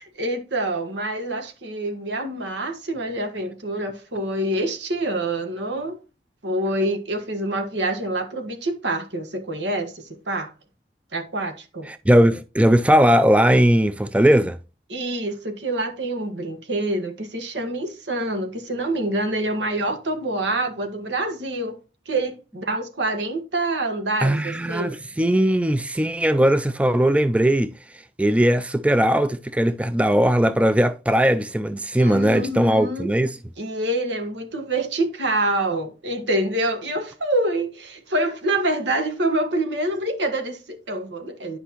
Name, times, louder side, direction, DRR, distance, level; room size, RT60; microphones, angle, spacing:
voice 1, 0.0-6.0 6.4-10.5 11.1-11.9 14.9-21.8 22.1-24.9 32.0-33.1 33.6-41.6, right 1 dB, 90° right, 1.5 m, -26 dB
voice 2, 11.9-14.6 24.2-33.4, equal, 5° right, 0.3 m, -19 dB
9.9 x 5.5 x 2.9 m
head